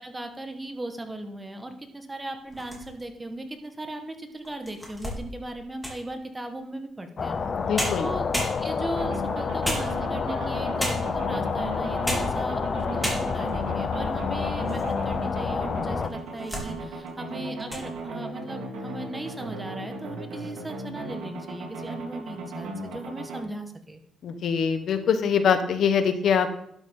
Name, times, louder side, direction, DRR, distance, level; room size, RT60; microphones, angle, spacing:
voice 1, 0.0-7.4 7.7-8.3 8.6-24.0, right 1 dB, 15° right, 5 dB, 1.6 m, -37 dB
sound 1, 2.5-3.2 3.8-3.9 4.4-6.1 7.4-7.5 7.8-9.0 9.6-10.3 10.8-11.3 11.9-12.4 12.7-12.8 13.0-13.6 14.1-14.9 15.2-15.3 16.0-16.7 17.1-17.3 17.6-17.9, equal, 5° left, 3.7 m, -32 dB
sound 2, 7.2-16.1, left 5 dB, 45° left, 0.8 m, -29 dB
voice 2, 7.6-8.1 24.2-26.5, left 7 dB, 65° left, 9 dB, 1.1 m, -23 dB
sound 3, 8.9-23.4, right 2 dB, 90° right, 3.5 m, -37 dB
12.0 x 8.0 x 3.9 m, 0.70 s
cardioid pair, 90°, 0 cm